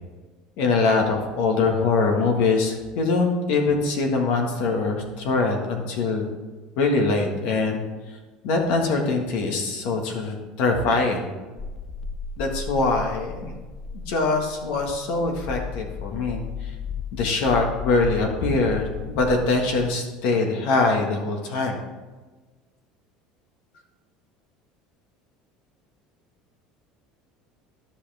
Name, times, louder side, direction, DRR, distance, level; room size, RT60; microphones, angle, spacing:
voice 1, 0.6-6.3 6.8-8.2 8.4-11.3 12.4-13.5 13.9-16.8 17.1-21.8, left 3 dB, 70° left, 2 dB, 1.6 m, -23 dB
sound 1, 11.6-19.9, left 6 dB, 10° left, 0.3 m, -35 dB
13.0 x 5.7 x 3.5 m, 1.3 s
supercardioid pair, 125°, 2 cm